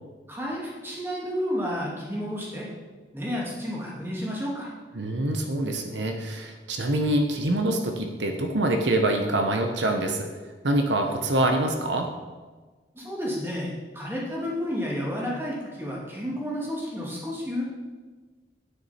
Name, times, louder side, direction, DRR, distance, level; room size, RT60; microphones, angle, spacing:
voice 1, 0.3-2.7 3.1-4.7 11.0-11.1 12.9-17.6, equal, 10° right, -4 dB, 2.2 m, -31 dB
voice 2, 4.9-10.3 10.6-12.1, right 1 dB, 75° right, 4 dB, 0.9 m, -25 dB
9.9 x 9.4 x 4.3 m, 1.3 s
head